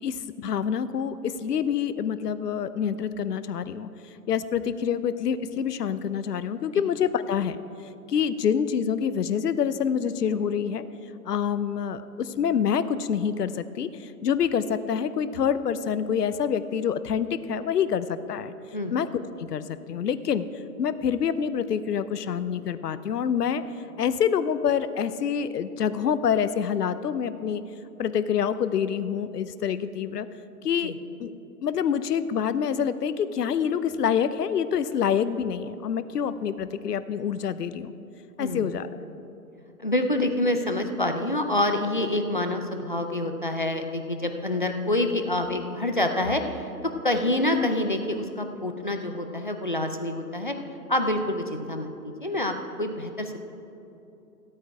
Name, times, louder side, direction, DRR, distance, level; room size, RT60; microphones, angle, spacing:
voice 1, 0.0-3.9 4.3-7.6 8.1-10.8 11.2-18.5 18.9-20.5 20.8-23.6 24.0-27.6 28.0-30.3 30.6-30.9 31.2-31.3 31.6-37.9 38.4-39.0, left 7 dB, 75° left, 13 dB, 0.8 m, -26 dB
voice 2, 38.4-38.7 39.8-50.5 50.9-53.4, left 1 dB, 35° left, 5 dB, 0.4 m, -27 dB
14.5 x 8.7 x 4.8 m, 2.9 s
hypercardioid pair, 165°, 48 cm